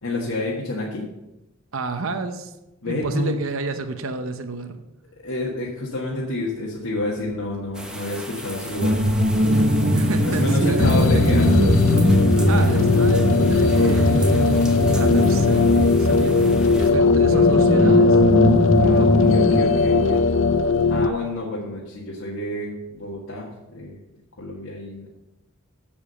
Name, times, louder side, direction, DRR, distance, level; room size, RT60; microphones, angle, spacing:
voice 1, 0.0-1.1 2.8-3.4 5.2-9.0 10.2-11.5 18.8-20.3 20.9-24.0 24.4-25.1, left 1 dB, 85° left, -5 dB, 1.7 m, -29 dB
voice 2, 1.7-2.5 2.9-4.8 9.9-11.5 12.2-18.2, right 3 dB, 70° right, 8 dB, 0.8 m, -30 dB
sound 1, 7.7-16.9, right 1 dB, 5° right, 0.8 m, -37 dB
sound 2, 8.8-19.6, equal, 45° right, 0.9 m, -21 dB
sound 3, 10.8-21.1, left 4 dB, 60° left, 0.5 m, -18 dB
7.4 x 7.1 x 6.8 m, 0.96 s
head